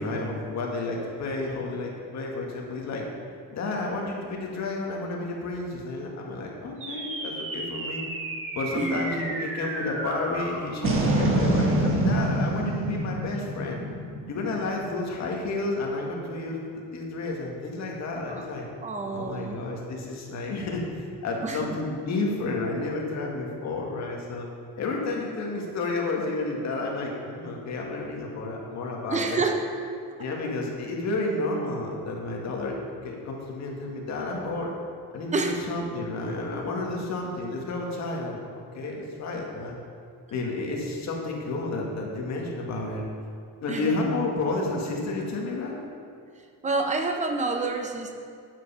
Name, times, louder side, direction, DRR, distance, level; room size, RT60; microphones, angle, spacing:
voice 1, 0.0-3.0 3.5-8.0 8.5-13.8 14.3-16.6 16.9-18.7 19.1-24.5 24.8-29.5 30.2-32.8 33.0-34.7 35.1-39.8 40.3-43.0 43.6-45.8, left 2 dB, 50° left, -1 dB, 1.8 m, -31 dB
sound 1, 6.8-15.4, right 1 dB, 35° right, 1.4 m, -28 dB
voice 2, 18.8-19.6 21.4-21.8 29.1-29.6 35.3-35.6 43.7-44.1 46.6-48.1, right 3 dB, 20° right, 4 dB, 0.8 m, -28 dB
9.6 x 7.8 x 5.6 m, 2.3 s
cardioid pair, 175°, 36 cm